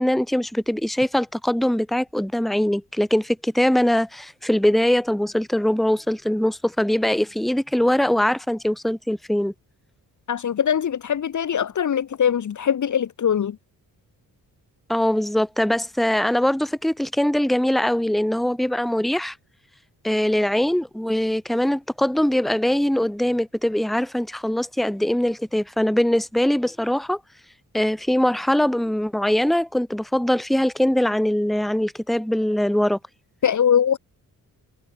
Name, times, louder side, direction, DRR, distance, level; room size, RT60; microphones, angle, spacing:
voice 1, 0.0-9.5 14.9-19.3 20.0-27.2 27.7-33.0, left 1 dB, ahead, 1.4 m, -22 dB
voice 2, 10.3-13.6 33.4-34.0, left 8 dB, 50° left, 1.4 m, -22 dB
cardioid pair, 120°, 37 cm